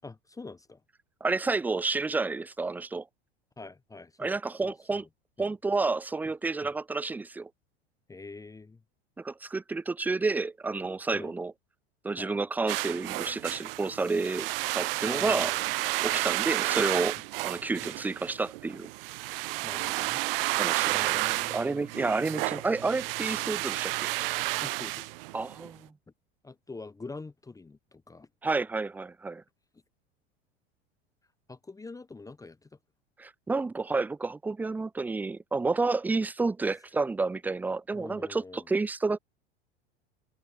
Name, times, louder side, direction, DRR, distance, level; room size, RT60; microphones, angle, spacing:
voice 1, 0.0-0.8 3.6-4.3 4.6-5.1 5.4-5.5 6.6-6.7 8.1-8.8 11.1-11.4 12.2-12.4 15.1-15.8 16.1-16.3 17.8-18.0 19.6-20.2 20.9-21.8 23.4-23.6 24.6-25.1 26.4-28.3 31.5-32.7 37.9-38.6, left 3 dB, 10° left, 1.1 m, -45 dB
voice 2, 1.2-3.1 4.2-5.0 5.4-7.5 9.2-11.5 12.0-14.5 14.7-15.5 16.0-17.2 17.4-18.9 20.5-24.1 25.3-25.9 28.4-29.4 33.2-39.2, right 3 dB, 5° right, 0.4 m, -30 dB
sound 1, 12.7-25.7, right 22 dB, 55° right, 0.8 m, -31 dB
figure-of-eight pair, 85°, 33 cm